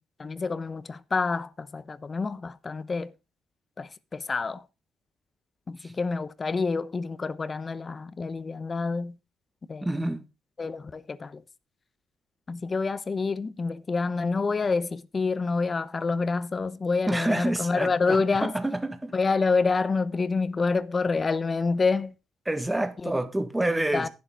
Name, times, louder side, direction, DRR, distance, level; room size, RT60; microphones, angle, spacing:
voice 1, 0.2-3.1 3.8-4.6 5.7-9.2 9.7-9.9 10.6-11.4 12.5-18.5 19.1-22.1 23.0-23.1 23.9-24.1, left 4 dB, 35° left, 0.9 m, -27 dB
voice 2, 9.8-10.2 17.1-19.1 22.5-24.1, right 1 dB, 10° right, 1.6 m, -28 dB
11.5 x 9.9 x 3.7 m
cardioid pair, 90°, 0 cm